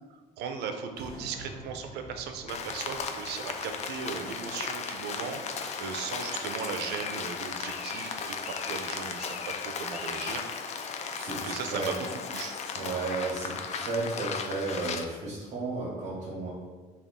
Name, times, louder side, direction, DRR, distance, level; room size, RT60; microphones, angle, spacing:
voice 1, 0.4-10.4 11.3-12.0 12.3-12.6, right 6 dB, 80° right, 6 dB, 0.4 m, -37 dB
sound 1, 0.9-6.1 6.5-6.6, right 1 dB, 20° left, 1.2 m, -49 dB
Rain, 2.5-15.0, left 5 dB, 40° left, 0.3 m, -36 dB
voice 2, 11.1-11.9 12.7-16.5, right 3 dB, 50° right, -6 dB, 0.9 m, -33 dB
3.5 x 2.3 x 3.6 m, 1.3 s
cardioid pair, 110°, 17 cm